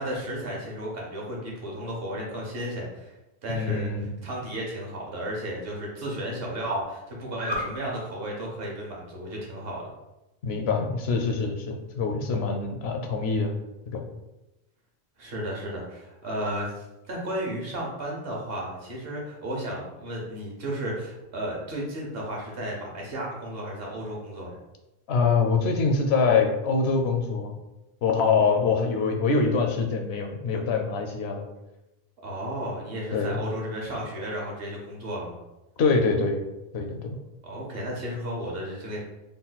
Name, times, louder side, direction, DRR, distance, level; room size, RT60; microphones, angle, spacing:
voice 1, 0.0-3.1 3.4-9.9 15.2-24.6 32.2-35.4 37.4-39.0, right 1 dB, 65° right, -2 dB, 1.2 m, -33 dB
voice 2, 3.5-4.2 10.4-13.5 13.9-14.0 25.1-27.5 28.0-31.5 33.1-33.4 35.8-36.4 36.7-37.2, left 4 dB, 80° left, 4 dB, 0.9 m, -24 dB
3.8 x 2.2 x 4.0 m, 0.96 s
omnidirectional pair, 1.1 m